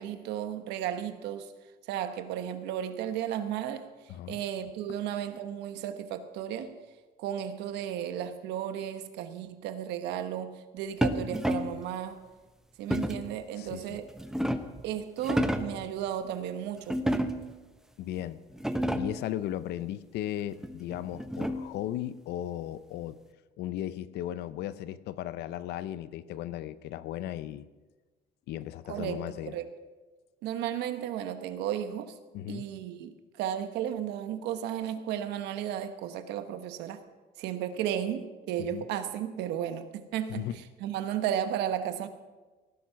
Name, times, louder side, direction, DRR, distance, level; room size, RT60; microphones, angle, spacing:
voice 1, 0.0-1.5 1.9-3.9 4.3-6.8 7.2-12.2 12.8-14.0 14.8-17.2 28.9-29.7 30.4-32.1 32.5-37.0 37.4-40.5 40.8-42.1, right 10 dB, 90° right, 1.2 m, -34 dB
voice 2, 4.1-4.4 13.6-14.0 18.0-18.4 19.0-23.2 23.6-27.7 28.5-29.6 32.3-32.7 38.6-38.8 40.3-40.6, left 12 dB, 80° left, 0.7 m, -36 dB
sound 1, 11.0-11.8 12.9-13.3 14.0-14.8 15.2-15.8 16.9-17.6 18.2-18.3 18.5-19.3 20.6-21.8, equal, 5° right, 0.9 m, -30 dB
17.5 x 10.5 x 5.9 m
cardioid pair, 110°, 17 cm